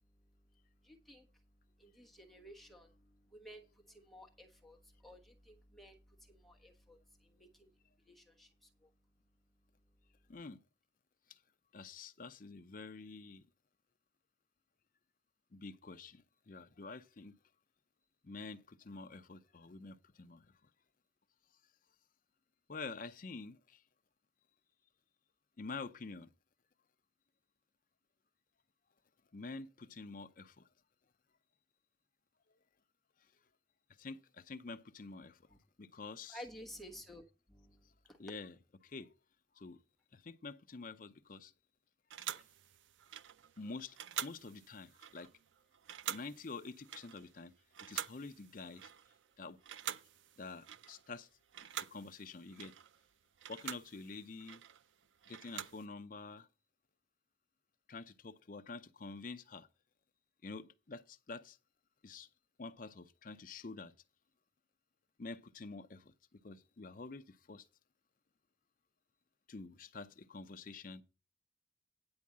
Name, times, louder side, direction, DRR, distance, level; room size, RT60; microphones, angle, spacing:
voice 1, 0.2-8.9 35.5-35.6 36.3-38.2, equal, ahead, 1.2 m, -55 dB
voice 2, 11.7-13.4 15.5-17.4 18.2-20.5 22.7-23.8 25.6-26.3 29.3-30.7 34.0-35.4 35.8-36.4 38.2-38.5 38.8-39.1 39.5-39.8 40.1-41.5 43.6-45.3 46.1-47.5 47.8-48.9 49.4-49.6 50.4-51.3 51.6-52.7 53.5-54.6 55.3-56.5 57.9-59.7 60.4-61.6 62.0-62.3 62.6-63.9 65.2-67.7 69.5-71.0, left 3 dB, 45° left, 0.6 m, -48 dB
sound 1, 42.1-49.3 49.6-51.2 51.5-55.9, right 10 dB, 85° right, 0.5 m, -47 dB
9.6 x 4.6 x 7.3 m
head